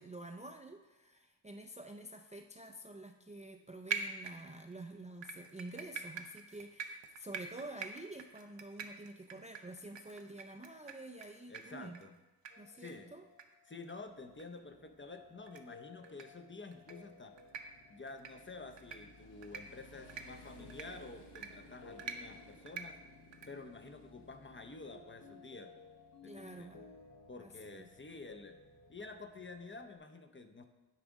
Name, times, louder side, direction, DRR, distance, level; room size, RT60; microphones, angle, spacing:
voice 1, 0.0-12.0 12.6-13.2 26.2-26.9 27.4-27.9, right 2 dB, 20° right, 4 dB, 0.4 m, -49 dB
sound 1, 3.9-4.7 5.2-11.3 11.5-11.6 11.9-12.1 12.5-12.6 12.8-12.9 13.4-13.5 13.8-13.9 14.4-14.5 15.5-15.6 16.0-16.2 16.7-16.9 17.4-17.6 18.1-18.3 18.8-19.0 19.4-19.6 20.1-20.2 20.7-20.8 21.4-21.5 22.0-22.2 22.7-22.8 23.3-23.5, right 6 dB, 85° right, 0.6 m, -42 dB
voice 2, 11.5-12.1 12.8-13.1 13.7-17.3 17.9-23.0 23.5-25.7 26.2-26.8 27.3-28.6 28.9-30.6, left 3 dB, 30° left, 7 dB, 0.6 m, -50 dB
sound 2, 12.5-30.0, left 4 dB, 55° left, 1.0 m, -60 dB
Motorcycle, 14.1-29.8, left 1 dB, 80° left, 1.2 m, -61 dB
8.8 x 4.9 x 3.6 m, 1.1 s
wide cardioid pair, 65°, 43 cm